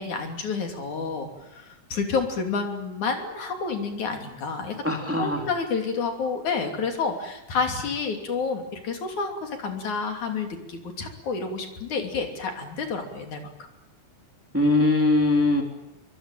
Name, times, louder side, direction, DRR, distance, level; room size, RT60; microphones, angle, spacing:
voice 1, 0.0-4.8 5.2-13.5, left 5 dB, 70° left, 4 dB, 4.4 m, -29 dB
voice 2, 4.8-5.5 14.5-15.6, left 2 dB, 5° right, 2 dB, 3.1 m, -21 dB
24.0 x 24.0 x 9.1 m, 0.88 s
omnidirectional pair, 3.6 m